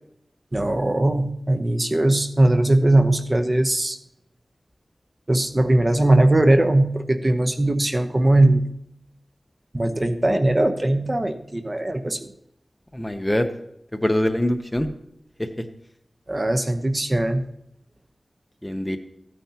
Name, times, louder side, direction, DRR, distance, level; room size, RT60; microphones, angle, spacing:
voice 1, 0.5-4.0 5.3-8.7 9.7-12.3 16.3-17.4, right 1 dB, 35° right, 7 dB, 0.9 m, -20 dB
voice 2, 12.9-13.5 14.0-14.9 15.4-15.5 18.6-19.0, left 1 dB, 10° left, 8 dB, 0.8 m, -23 dB
15.0 x 9.3 x 2.9 m, 0.78 s
wide cardioid pair, 70°, 0 cm